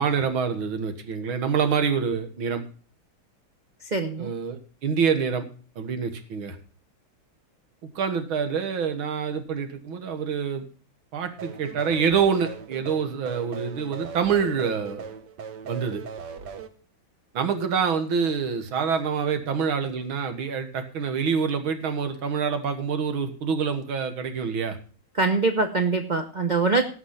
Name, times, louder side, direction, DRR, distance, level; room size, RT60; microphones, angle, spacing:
voice 1, 0.0-2.6 4.2-5.5 5.8-6.6 8.0-10.7 11.1-15.1 15.7-16.0 17.3-24.8, right 6 dB, 85° right, 8 dB, 2.2 m, -26 dB
voice 2, 3.8-4.3 25.1-26.9, right 3 dB, 40° right, 6 dB, 0.6 m, -23 dB
sound 1, 11.4-16.7, right 6 dB, 65° right, 1.5 m, -39 dB
17.5 x 5.9 x 5.7 m, 0.39 s
omnidirectional pair, 2.2 m